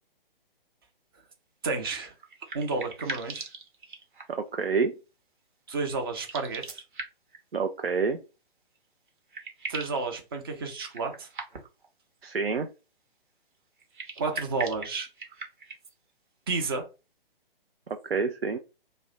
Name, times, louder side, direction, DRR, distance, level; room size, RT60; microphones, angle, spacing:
voice 1, 1.6-2.1 2.5-3.5 5.7-6.8 9.7-11.3 14.2-15.1 16.5-16.9, right 4 dB, 25° right, 4 dB, 0.5 m, -31 dB
sound 1, 2.0-4.5 6.1-7.4 8.7-8.8 9.1-10.0 10.9-11.9 13.8-15.9, right 3 dB, 55° right, 0.9 m, -40 dB
voice 2, 4.3-4.9 7.5-8.2 12.2-12.7 17.9-18.6, right 5 dB, 85° right, 7 dB, 0.4 m, -28 dB
2.4 x 2.1 x 3.8 m, 0.30 s
figure-of-eight pair, 130°, 29 cm